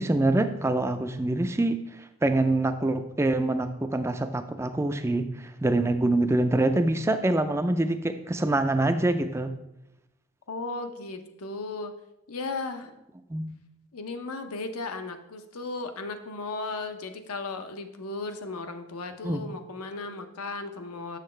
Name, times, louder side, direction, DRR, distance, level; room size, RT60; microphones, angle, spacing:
voice 1, 0.0-1.8 2.2-9.5 13.3-13.6 19.2-19.4, right 2 dB, 10° right, 8 dB, 0.3 m, -25 dB
voice 2, 10.5-11.9 12.3-12.9 13.9-21.2, left 3 dB, 85° left, 7 dB, 0.7 m, -35 dB
7.3 x 6.5 x 3.2 m, 0.89 s
head